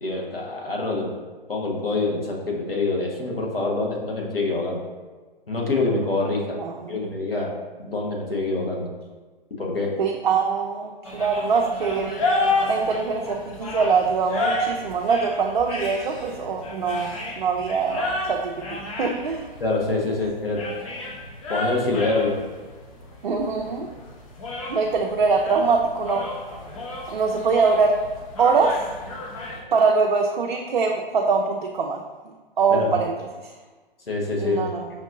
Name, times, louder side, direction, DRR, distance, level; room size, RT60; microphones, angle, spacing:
voice 1, 0.0-1.1 1.5-4.8 5.5-6.6 6.9-7.5 7.8-8.9 9.6-10.0 19.6-20.6 21.5-22.4 32.7-32.9 34.1-34.6, left 3 dB, 75° left, -1 dB, 1.1 m, -25 dB
voice 2, 6.6-7.0 10.0-12.3 12.7-19.5 23.2-23.9 24.7-26.2 27.1-28.0 28.4-28.8 29.7-32.0 32.6-33.1 33.4-33.5 34.4-34.9, right 5 dB, 55° right, 1 dB, 0.5 m, -23 dB
sound 1, 11.0-29.6, left 2 dB, 35° left, 0.7 m, -31 dB
5.8 x 2.6 x 2.5 m, 1.3 s
figure-of-eight pair, 125°, 29 cm